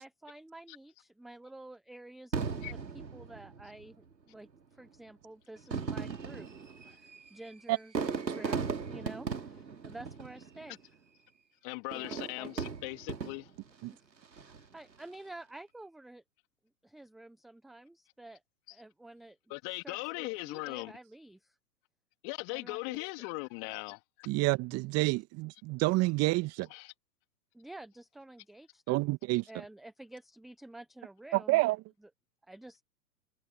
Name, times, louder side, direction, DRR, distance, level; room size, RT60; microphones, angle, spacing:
voice 1, 0.0-6.5 6.8-7.9 8.2-10.8 11.9-12.6 13.9-16.2 16.8-18.4 18.7-19.4 19.8-21.6 22.5-23.2 27.5-29.1 29.5-31.6 32.4-32.8, right 2 dB, ahead, 0.4 m, -50 dB
Fireworks, 2.3-3.9 4.8-4.9 5.6-10.8 11.9-13.7 14.2-14.7, right 5 dB, 85° right, 2.5 m, -37 dB
voice 2, 11.6-13.5 19.5-20.9 22.2-24.3 26.7-26.9, left 35 dB, 40° left, 3.0 m, -39 dB
voice 3, 24.3-26.7 28.9-29.4 31.3-31.8, right 21 dB, 30° right, 1.7 m, -28 dB
figure-of-eight pair, 110°, 50 cm